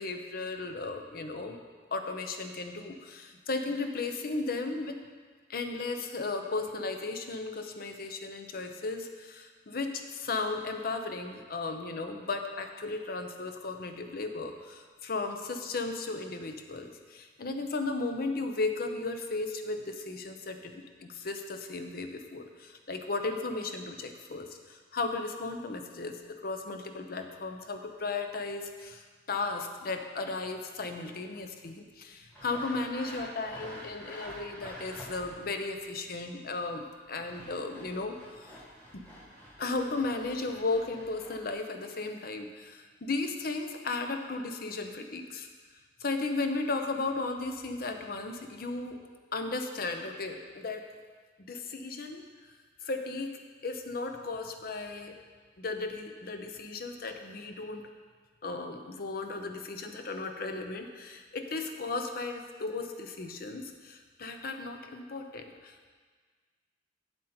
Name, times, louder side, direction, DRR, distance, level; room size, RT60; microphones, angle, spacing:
voice 1, 0.0-1.6 1.9-5.0 5.5-38.6 38.9-39.1 39.6-45.5 46.0-49.0 49.3-50.9 51.5-52.2 52.8-53.3 53.6-55.2 55.6-57.8 58.4-65.9, left 3 dB, 55° left, 6 dB, 0.7 m, -35 dB
Sawing, 32.3-35.5 37.0-41.5, equal, 10° left, 1.7 m, -47 dB
8.0 x 7.7 x 4.3 m, 1.5 s
head